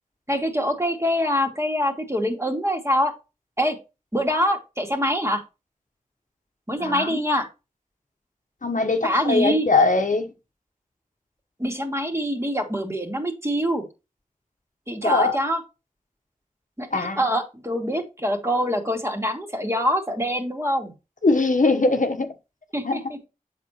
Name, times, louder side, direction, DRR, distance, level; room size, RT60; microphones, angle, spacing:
voice 1, 0.3-3.1 3.6-3.8 4.1-5.4 6.7-7.5 9.0-9.7 11.6-13.9 14.9-15.6 16.8-20.9 22.7-23.2, equal, 20° right, 2.6 m, -24 dB
voice 2, 6.8-7.2 8.6-10.3 15.0-15.4 16.9-17.3 21.2-22.3 22.8-23.0, left 3 dB, 65° left, 1.2 m, -21 dB
7.8 x 6.9 x 3.1 m
wide cardioid pair, 45°, 14 cm